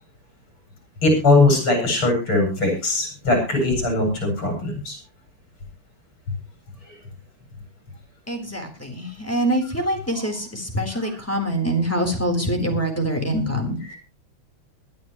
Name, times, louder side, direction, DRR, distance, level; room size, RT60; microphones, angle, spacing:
voice 1, 1.0-5.0 6.9-7.0 13.9-14.0, left 2 dB, 70° left, 2 dB, 8.5 m, -20 dB
voice 2, 8.3-13.9, right 1 dB, 5° left, 3 dB, 3.8 m, -25 dB
22.0 x 12.0 x 3.1 m, 0.32 s
omnidirectional pair, 2.4 m